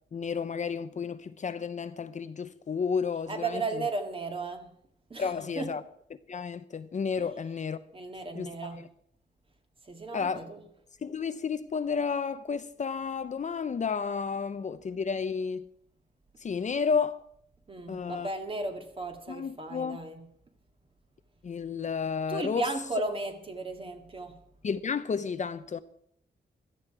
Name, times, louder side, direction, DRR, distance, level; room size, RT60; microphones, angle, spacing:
voice 1, 0.1-3.8 5.2-5.8 6.3-7.8 8.3-8.9 10.1-10.4 11.0-15.6 16.4-17.2 17.9-18.3 19.3-20.0 21.4-22.6 24.6-25.8, left 6 dB, 40° left, 0.6 m, -32 dB
voice 2, 3.3-4.7 5.1-5.8 7.2-7.3 7.9-8.9 9.9-10.6 17.7-20.3 22.3-24.4, right 3 dB, 30° right, 1.9 m, -35 dB
16.5 x 13.0 x 4.8 m
wide cardioid pair, 160°, 18 cm